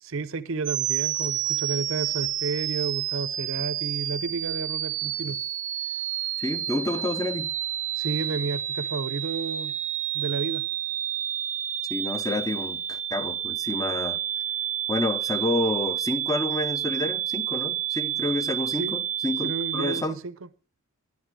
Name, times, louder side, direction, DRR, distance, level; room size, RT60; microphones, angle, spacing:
voice 1, 0.0-5.4 7.9-9.8 10.1-10.7 18.8-18.9 19.4-20.3, right 4 dB, 65° right, 0.7 m, -31 dB
sound 1, 0.6-20.0, right 12 dB, 35° right, 0.4 m, -30 dB
voice 2, 6.4-7.5 11.9-14.2 14.9-20.2, left 2 dB, 15° left, 0.8 m, -29 dB
10.5 x 10.0 x 4.7 m
head